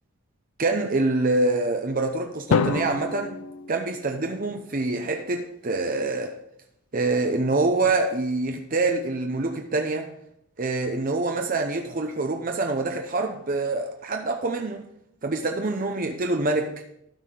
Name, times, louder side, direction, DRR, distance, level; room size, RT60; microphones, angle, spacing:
voice 1, 0.6-3.4 3.7-6.4 6.9-10.1 10.6-14.8 15.2-16.7, right 2 dB, 40° right, 0.6 m, -25 dB
Drum, 2.5-4.6, left 5 dB, 75° left, 0.5 m, -27 dB
12.5 x 4.8 x 5.2 m
head